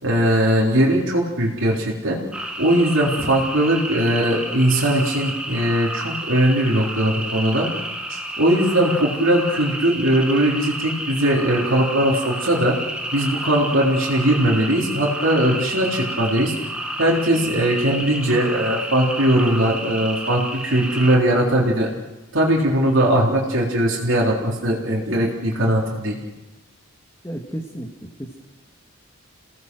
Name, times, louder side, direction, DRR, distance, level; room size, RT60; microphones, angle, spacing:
voice 1, 0.0-2.2 2.6-7.7 8.1-12.8 13.1-16.5 17.0-21.9 22.3-26.2, right 1 dB, 65° right, -3 dB, 3.9 m, -20 dB
sound 1, 2.3-21.1, right 1 dB, 5° right, 1.9 m, -31 dB
voice 2, 27.2-28.4, right 1 dB, 15° left, 0 dB, 2.0 m, -33 dB
29.0 x 18.5 x 6.3 m, 1.2 s
head